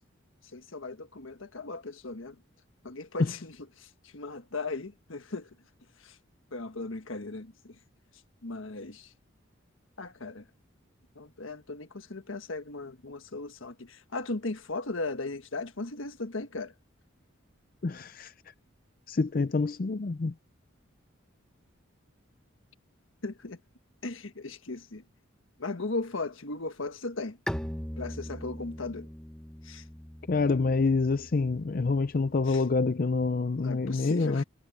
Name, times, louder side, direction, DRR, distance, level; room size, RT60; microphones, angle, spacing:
voice 1, 0.5-2.4 2.8-5.5 6.0-6.2 6.5-7.8 8.4-9.1 10.0-10.5 11.1-16.7 23.2-23.6 24.0-25.0 25.6-27.4 28.0-29.1 29.6-29.9 32.5-32.6 33.6-34.4, left 3 dB, 75° left, 1.5 m, -37 dB
voice 2, 17.8-18.3 19.1-20.3 30.3-34.4, left 4 dB, 45° left, 0.5 m, -27 dB
Bowed string instrument, 27.5-33.0, equal, 5° left, 1.3 m, -41 dB
head